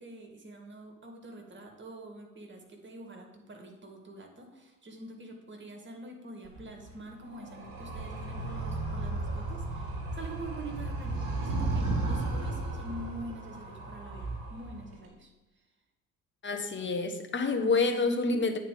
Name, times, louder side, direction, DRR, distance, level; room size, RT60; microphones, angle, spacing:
voice 1, 0.0-15.6, right 1 dB, 25° right, 2 dB, 2.1 m, -45 dB
Animal, 6.4-15.0, right 2 dB, 50° right, 3.5 m, -35 dB
voice 2, 16.4-18.6, left 3 dB, 25° left, 6 dB, 1.2 m, -28 dB
8.9 x 4.5 x 7.0 m, 1.1 s
figure-of-eight pair, 60°, 45 cm